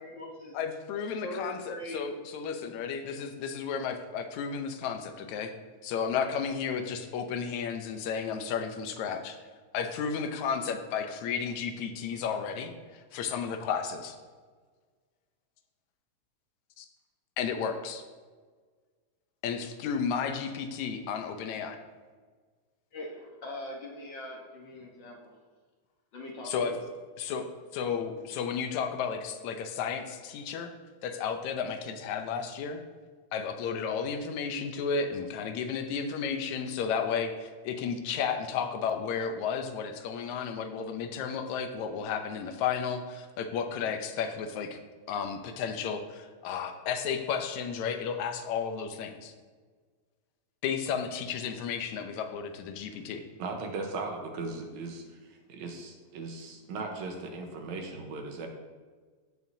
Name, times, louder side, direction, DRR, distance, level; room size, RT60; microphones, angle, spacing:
voice 1, 0.0-0.6 1.2-2.0 22.9-25.3 26.1-26.8, left 1 dB, 50° left, -1 dB, 1.5 m, -41 dB
voice 2, 0.5-5.5 5.8-9.4 9.7-14.2 16.8-16.9 17.4-18.0 19.4-21.8 26.5-26.7 27.2-27.5 27.7-30.7 31.0-32.8 33.3-44.8 45.1-49.3 50.6-53.2, left 6 dB, 80° left, 7 dB, 2.1 m, -33 dB
voice 3, 53.4-58.5, right 3 dB, 75° right, 3 dB, 2.2 m, -38 dB
16.0 x 6.3 x 2.7 m, 1.5 s
omnidirectional pair, 3.3 m